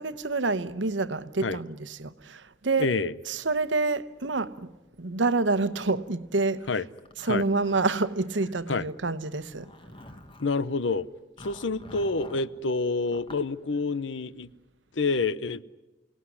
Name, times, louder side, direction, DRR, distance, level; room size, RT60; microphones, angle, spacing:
voice 1, 0.0-2.9 3.3-4.7 5.0-6.7 7.2-9.7, right 3 dB, 75° right, 1.0 m, -27 dB
voice 2, 2.8-3.1 6.7-6.8 7.3-7.4 8.7-8.8 10.4-11.1 11.4-14.5 15.0-15.6, left 3 dB, 80° left, 0.8 m, -28 dB
Zipper (clothing), 7.0-8.5 9.3-10.6 11.4-12.5 13.1-13.5, left 1 dB, 30° left, 1.8 m, -47 dB
29.0 x 18.5 x 9.8 m
head